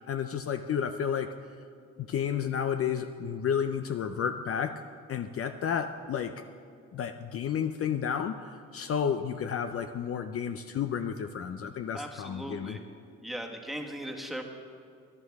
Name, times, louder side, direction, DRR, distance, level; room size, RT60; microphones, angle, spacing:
voice 1, 0.1-1.3 2.1-4.8 5.1-6.4 6.9-12.8, left 8 dB, 50° left, 9 dB, 0.5 m, -31 dB
voice 2, 11.9-12.8 13.2-14.4, equal, ahead, 2 dB, 1.5 m, -38 dB
17.5 x 11.0 x 3.5 m, 2.4 s
cardioid pair, 90°, 30 cm